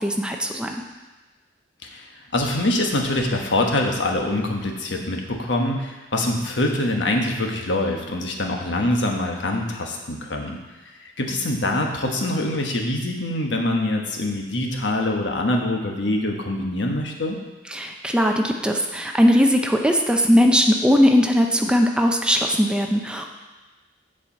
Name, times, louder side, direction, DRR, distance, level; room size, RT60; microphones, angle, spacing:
voice 1, 0.0-0.8 17.7-23.2, equal, 5° right, 3 dB, 0.6 m, -19 dB
voice 2, 2.3-10.6 11.0-17.4, left 1 dB, 80° left, 2 dB, 1.2 m, -24 dB
7.3 x 4.9 x 7.2 m, 1.2 s
head